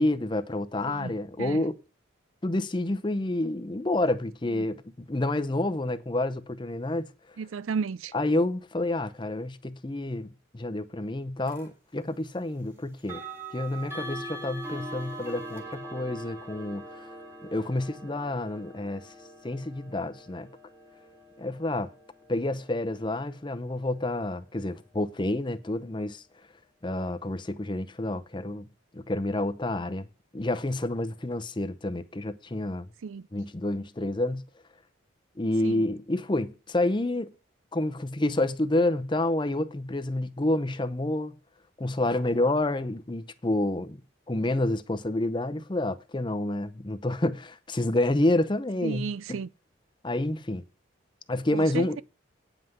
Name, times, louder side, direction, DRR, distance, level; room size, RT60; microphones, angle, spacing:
voice 1, 0.0-1.8 2.4-7.1 8.1-13.2 13.5-17.1 17.4-19.1 19.4-20.5 21.4-21.9 22.3-26.2 26.8-28.7 28.9-30.1 30.3-32.9 33.3-34.5 35.4-37.3 37.7-41.3 41.8-44.0 44.3-49.4 50.0-50.6 51.3-52.0, left 1 dB, 25° left, 0.7 m, -29 dB
voice 2, 7.4-8.1 33.0-33.2 35.6-35.7 48.8-49.5 51.5-52.0, right 5 dB, 90° right, 0.4 m, -33 dB
sound 1, 11.5-11.7 13.0-23.9, right 1 dB, 15° right, 1.7 m, -43 dB
9.3 x 5.6 x 7.9 m
head